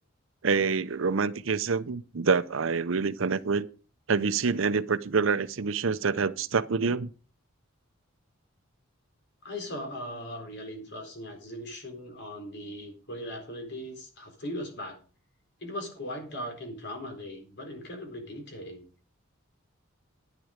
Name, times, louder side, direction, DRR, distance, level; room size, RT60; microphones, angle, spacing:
voice 1, 0.4-3.7 4.1-7.1, right 5 dB, 65° right, 0.7 m, -26 dB
voice 2, 9.4-15.0 15.6-18.8, left 1 dB, 55° left, 4.1 m, -39 dB
11.0 x 10.0 x 5.1 m
head